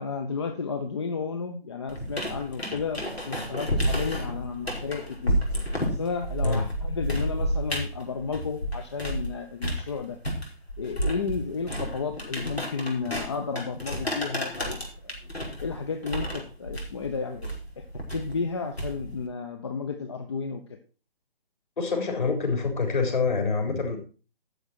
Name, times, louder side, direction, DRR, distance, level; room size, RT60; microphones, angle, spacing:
voice 1, 0.0-5.4 6.0-10.2 10.8-15.1 15.6-17.8 18.1-20.6, left 5 dB, 25° left, 7 dB, 0.9 m, -32 dB
sound 1, 1.9-9.3 9.6-19.2, equal, 90° left, 5.1 m, -31 dB
voice 2, 21.8-24.0, left 4 dB, 55° left, 4 dB, 4.1 m, -26 dB
13.0 x 7.9 x 4.4 m, 0.34 s
figure-of-eight pair, 145°, 30 cm